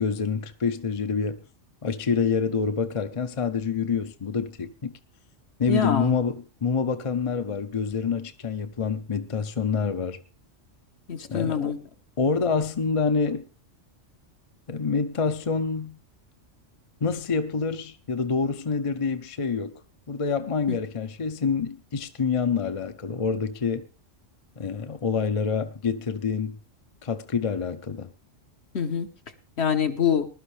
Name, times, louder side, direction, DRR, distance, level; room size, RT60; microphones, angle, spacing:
voice 1, 0.0-1.4 1.8-4.9 5.6-10.2 11.3-11.7 12.2-13.4 14.7-16.0 17.0-19.7 20.1-23.9 24.6-26.6 27.0-28.1, left 5 dB, 35° left, 0.7 m, -27 dB
voice 2, 5.7-6.1 11.1-11.8 20.7-20.8 28.7-29.1 29.6-30.3, left 7 dB, 60° left, 1.3 m, -25 dB
20.5 x 12.0 x 3.3 m
omnidirectional pair, 1.3 m